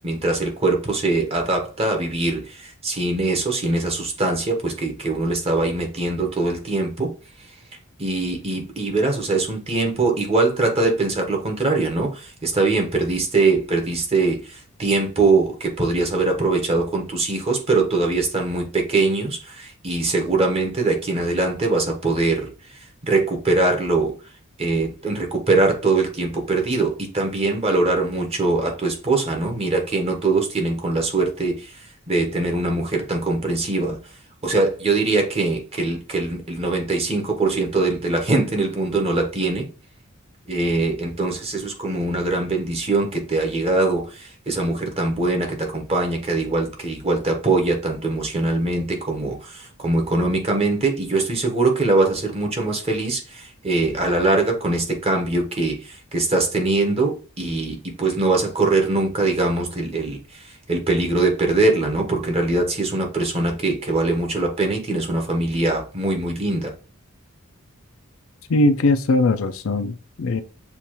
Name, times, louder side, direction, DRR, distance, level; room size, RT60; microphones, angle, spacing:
voice 1, 0.0-7.1 8.0-24.1 24.6-34.0 34.4-39.7 40.5-66.7, right 3 dB, 30° right, 1.1 m, -22 dB
voice 2, 68.5-70.4, left 2 dB, 65° left, 0.5 m, -20 dB
6.9 x 2.5 x 3.0 m
head